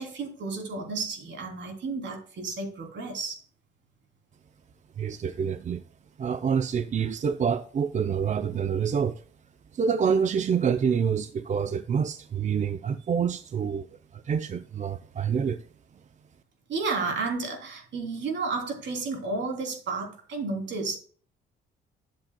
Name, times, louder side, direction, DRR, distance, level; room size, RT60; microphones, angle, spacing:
voice 1, 0.0-3.4 16.7-21.0, right 4 dB, 65° right, 3.1 m, -32 dB
voice 2, 5.0-5.8 6.2-9.2 9.7-13.9 14.3-15.6, right 7 dB, 40° right, 0.5 m, -27 dB
12.0 x 7.3 x 2.2 m
cardioid pair, 90°, 20 cm